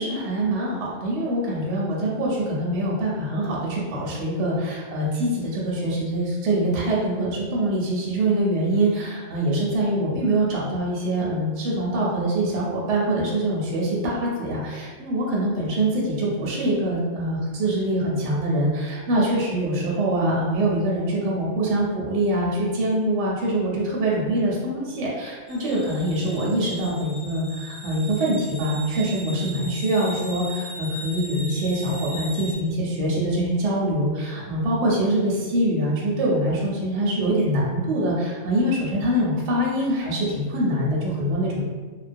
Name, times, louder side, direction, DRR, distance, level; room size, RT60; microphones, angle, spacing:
voice 1, 0.0-41.6, right 1 dB, 70° right, -4 dB, 0.8 m, -24 dB
sound 1, 25.5-32.5, equal, 50° left, 0.4 m, -38 dB
2.2 x 2.2 x 2.5 m, 1.4 s
omnidirectional pair, 1.3 m